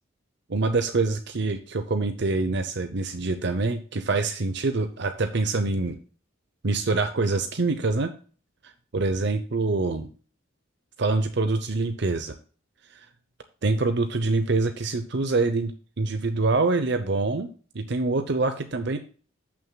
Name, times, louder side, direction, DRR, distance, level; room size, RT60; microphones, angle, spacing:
voice 1, 0.5-6.0 6.6-8.1 8.6-10.1 11.0-12.3 12.9-13.1 13.6-17.5 17.7-19.0, right 3 dB, 55° right, 8 dB, 0.7 m, -25 dB
15.5 x 6.1 x 2.2 m, 0.40 s
head